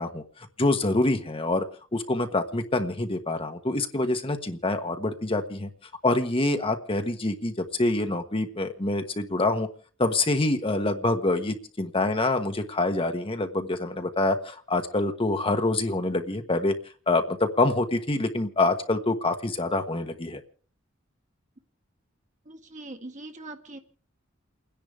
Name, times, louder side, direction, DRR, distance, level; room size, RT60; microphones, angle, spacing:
voice 1, 0.0-1.7 1.9-5.7 6.0-9.7 10.0-16.7 17.1-20.4, left 2 dB, 30° left, 6 dB, 1.2 m, -26 dB
voice 2, 22.4-23.8, right 2 dB, 40° right, 6 dB, 1.6 m, -41 dB
30.0 x 10.5 x 3.5 m, 0.42 s
head